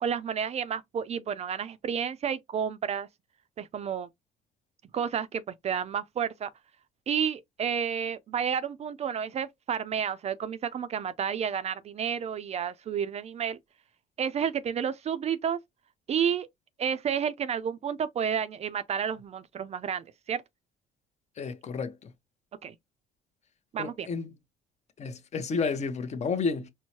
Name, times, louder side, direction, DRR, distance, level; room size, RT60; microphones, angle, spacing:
voice 1, 0.0-3.1 3.6-4.1 4.9-6.5 7.1-13.6 14.2-15.6 16.1-16.5 16.8-20.4 22.6-22.7 23.7-24.1, right 8 dB, 40° right, 0.4 m, -31 dB
voice 2, 21.4-22.1 23.8-24.3 25.0-26.7, left 5 dB, 40° left, 0.7 m, -31 dB
4.5 x 2.1 x 2.8 m
cardioid pair, 110°, 17 cm